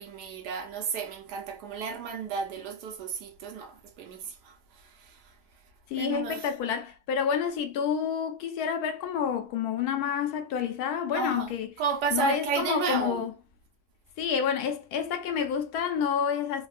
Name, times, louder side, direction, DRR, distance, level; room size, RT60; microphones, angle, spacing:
voice 1, 0.0-4.5 5.0-5.2 6.0-6.5 11.1-11.5 11.8-13.3, right 5 dB, 85° right, 1.3 m, -32 dB
voice 2, 5.9-11.7 12.1-13.3 14.2-16.7, left 7 dB, 75° left, 1.1 m, -29 dB
3.3 x 2.2 x 2.5 m
omnidirectional pair, 1.7 m